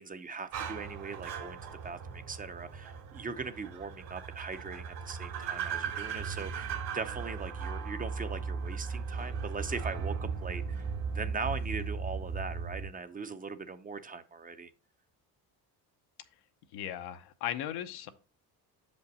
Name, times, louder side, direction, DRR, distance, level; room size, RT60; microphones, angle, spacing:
voice 1, 0.0-14.7, right 4 dB, 20° right, 11 dB, 0.5 m, -40 dB
sound 1, 0.5-12.9, right 5 dB, 75° right, 2.2 m, -37 dB
voice 2, 16.7-18.1, left 11 dB, 85° left, 9 dB, 0.8 m, -37 dB
6.8 x 5.2 x 4.1 m, 0.35 s
cardioid pair, 115°, 38 cm